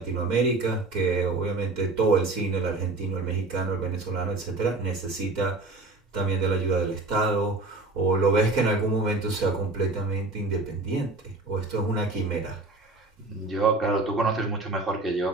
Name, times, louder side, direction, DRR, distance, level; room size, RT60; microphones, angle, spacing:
voice 1, 0.0-5.5 6.1-11.1 11.5-12.6, right 3 dB, 60° right, 0 dB, 3.2 m, -26 dB
voice 2, 12.8-15.3, right 3 dB, 30° right, 0 dB, 2.2 m, -27 dB
9.5 x 3.6 x 3.1 m, 0.39 s
supercardioid pair, 95°, 0 cm